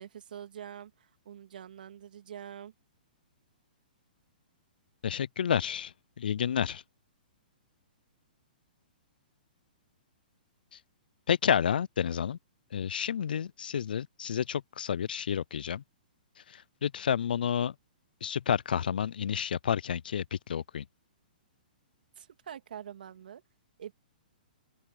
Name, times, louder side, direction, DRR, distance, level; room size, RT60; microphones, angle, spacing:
voice 1, 0.0-2.7 22.2-23.4 23.8-23.9, right 9 dB, 70° right, 3.0 m, -45 dB
voice 2, 5.0-6.8 11.3-12.4 12.7-15.8 16.5-17.7 18.2-20.8, left 8 dB, 80° left, 0.4 m, -30 dB
open air
hypercardioid pair, 140°, 5 cm